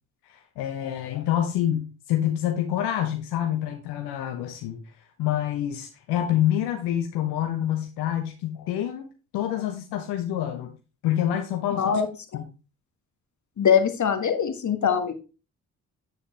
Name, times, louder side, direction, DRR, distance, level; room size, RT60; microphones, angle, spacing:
voice 1, 0.3-4.8 5.2-9.1 9.3-10.8 11.0-12.0 12.3-12.4, left 11 dB, 75° left, 1.0 m, -27 dB
voice 2, 11.7-12.1 13.6-15.1, left 7 dB, 45° left, 1.8 m, -22 dB
8.8 x 6.7 x 3.3 m
hypercardioid pair, 45°, 39 cm